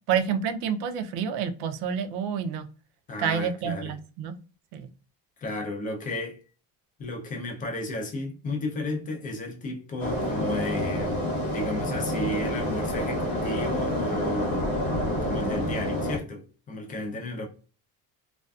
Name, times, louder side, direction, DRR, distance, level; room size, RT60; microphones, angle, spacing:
voice 1, 0.1-2.6 3.2-4.3 4.7-4.9, right 7 dB, 80° right, 0.5 m, -28 dB
voice 2, 3.1-3.9 5.4-6.4 7.0-14.6 15.2-17.5, left 2 dB, 20° left, 0.4 m, -33 dB
sound 1, 10.0-16.2, left 1 dB, 70° left, 0.9 m, -28 dB
2.4 x 2.3 x 2.2 m
cardioid pair, 175°, 38 cm